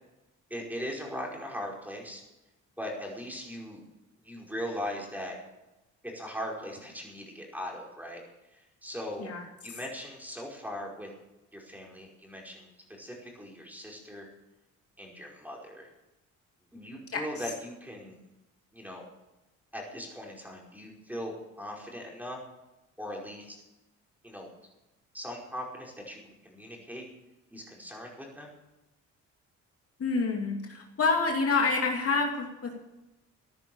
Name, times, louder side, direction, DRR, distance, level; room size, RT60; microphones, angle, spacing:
voice 1, 0.5-2.2 2.8-3.8 4.2-5.4 6.1-8.2 8.5-9.3 9.6-11.1 11.5-12.7 13.0-14.3 15.0-15.9 16.7-18.2 18.7-19.0 19.7-22.4 23.0-23.6 24.2-24.5 25.1-27.0 27.5-28.5, equal, 5° right, -1 dB, 5.0 m, -39 dB
voice 2, 17.1-17.5 30.0-32.8, left 4 dB, 50° left, 1 dB, 2.7 m, -28 dB
15.0 x 10.5 x 7.2 m, 1.0 s
cardioid pair, 90°, 30 cm